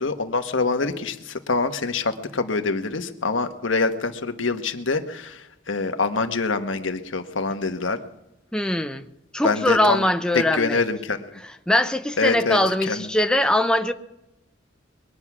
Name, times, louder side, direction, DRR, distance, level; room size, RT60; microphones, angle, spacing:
voice 1, 0.0-8.0 9.4-10.0 10.3-11.3 12.2-12.6 12.9-13.1, left 3 dB, 85° left, 1.2 m, -25 dB
voice 2, 8.5-9.0 9.3-10.8 11.7-13.9, left 1 dB, 5° left, 0.6 m, -21 dB
21.5 x 9.7 x 6.0 m
head